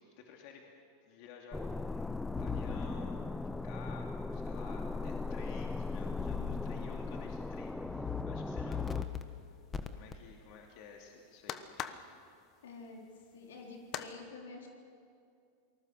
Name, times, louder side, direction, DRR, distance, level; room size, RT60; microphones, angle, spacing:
voice 1, 0.2-0.7 1.0-3.3 3.6-9.6 9.9-12.0, left 5 dB, 60° left, 1 dB, 2.7 m, -53 dB
sound 1, 1.5-9.0, left 3 dB, 5° left, 0.7 m, -38 dB
sound 2, 2.4-2.9 3.9-4.0 6.2-6.6 7.1-7.4 7.8-8.2 8.6-9.2 9.7-10.2, left 9 dB, 20° left, 1.4 m, -39 dB
voice 2, 5.9-6.7 12.6-13.0 13.3-14.7, left 3 dB, 90° left, 1 dB, 4.0 m, -49 dB
sound 3, 9.0-14.1, left 10 dB, 45° left, 1.2 m, -46 dB
27.5 x 20.0 x 6.6 m, 2.4 s
hypercardioid pair, 110°, 0 cm